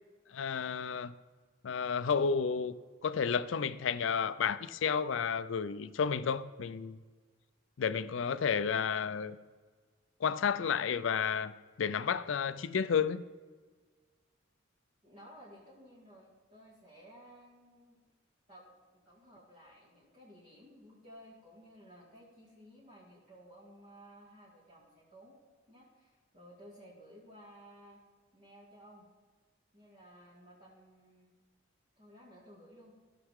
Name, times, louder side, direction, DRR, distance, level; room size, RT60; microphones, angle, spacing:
voice 1, 0.3-1.1 1.6-2.7 3.0-7.0 7.8-9.4 10.2-11.5 11.8-13.2, left 6 dB, 75° left, 0.4 m, -31 dB
voice 2, 15.0-18.0 18.5-18.7 19.1-25.4 25.7-28.0 28.3-29.1 29.7-31.3 32.0-32.9, equal, 40° right, 2.0 m, -56 dB
14.5 x 5.9 x 3.7 m
head